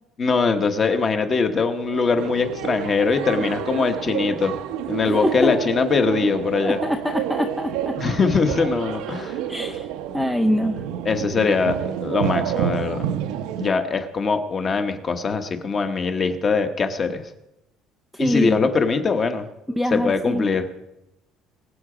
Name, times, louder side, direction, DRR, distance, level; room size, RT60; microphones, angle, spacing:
voice 1, 0.2-4.5 4.9-6.8 7.9-9.4 11.0-13.1 13.6-17.2 18.2-19.5 19.9-20.7, left 4 dB, 25° left, 7 dB, 1.0 m, -22 dB
sound 1, 1.7-13.7, right 9 dB, 80° right, 0.8 m, -29 dB
voice 2, 6.6-7.9 9.5-9.9 10.1-10.8 18.1-18.7 19.8-20.5, equal, 5° left, 5 dB, 0.4 m, -24 dB
22.5 x 7.7 x 5.0 m, 0.91 s
cardioid pair, 175°, 0 cm